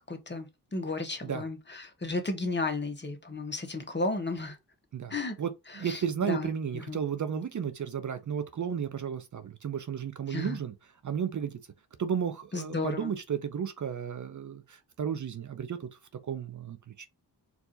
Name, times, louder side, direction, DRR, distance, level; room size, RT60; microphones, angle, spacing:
voice 1, 0.1-4.6 5.1-5.4 5.7-6.5 6.9-7.0 10.3-10.6 12.5-13.1, left 3 dB, 25° left, 1.3 m, -33 dB
voice 2, 4.9-10.7 11.0-11.6 12.0-15.9 16.2-17.1, right 7 dB, 45° right, 0.6 m, -33 dB
4.7 x 2.7 x 3.9 m
cardioid pair, 80°, 41 cm